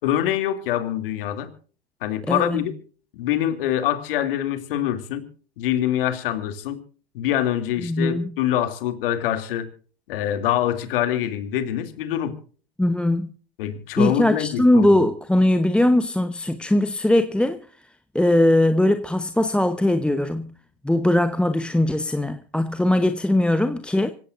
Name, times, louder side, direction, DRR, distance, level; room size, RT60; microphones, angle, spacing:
voice 1, 0.0-1.5 2.0-2.7 3.2-5.3 5.6-6.8 7.1-9.7 10.1-12.3 13.6-14.9, left 11 dB, 65° left, 2.8 m, -24 dB
voice 2, 2.3-2.6 7.8-8.3 12.8-13.3 14.0-17.6 18.1-20.5 20.8-24.1, left 1 dB, 5° left, 1.0 m, -20 dB
26.0 x 16.5 x 2.6 m
hypercardioid pair, 105°, 30 cm